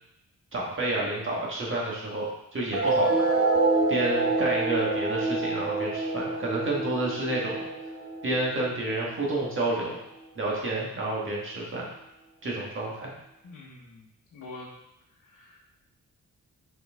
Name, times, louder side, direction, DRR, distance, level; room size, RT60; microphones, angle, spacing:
voice 1, 0.5-2.3 2.5-3.2 3.9-7.7 8.2-10.0 10.3-11.8 12.4-13.1, right 2 dB, 40° right, -3 dB, 1.6 m, -29 dB
sound 1, 2.7-9.7, right 3 dB, 80° right, 1.1 m, -27 dB
voice 2, 13.4-14.1 14.3-14.7 15.2-15.7, left 2 dB, 70° left, -4 dB, 1.1 m, -45 dB
6.5 x 4.6 x 3.6 m, 0.85 s
wide cardioid pair, 175°, 32 cm